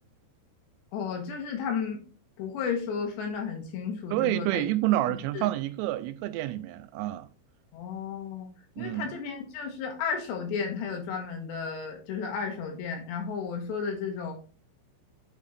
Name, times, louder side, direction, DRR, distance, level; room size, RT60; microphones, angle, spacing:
voice 1, 0.9-2.0 2.4-4.6 5.1-5.5 7.7-8.5 8.8-14.3, left 6 dB, 70° left, 3.1 m, -33 dB
voice 2, 4.1-7.3 8.8-9.1, right 15 dB, 90° right, 3.0 m, -28 dB
8.6 x 3.6 x 4.2 m
omnidirectional pair, 5.5 m